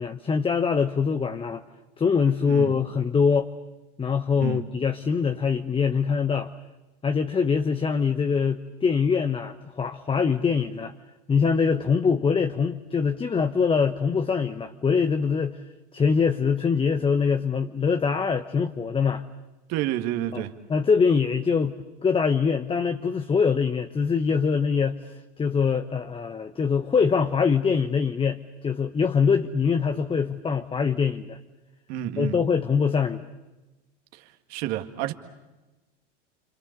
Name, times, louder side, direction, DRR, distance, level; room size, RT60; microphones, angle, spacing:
voice 1, 0.0-1.6 2.0-3.5 4.0-6.5 7.0-10.9 11.3-15.6 15.9-19.2 20.3-20.4 20.7-21.7 22.0-31.4 32.2-33.2, left 5 dB, 15° left, 8 dB, 1.0 m, -23 dB
voice 2, 19.7-20.5 31.9-32.4 34.1-34.2 34.5-35.1, right 13 dB, 50° right, 7 dB, 2.1 m, -29 dB
29.5 x 26.5 x 6.8 m, 1.1 s
hypercardioid pair, 95°, 34 cm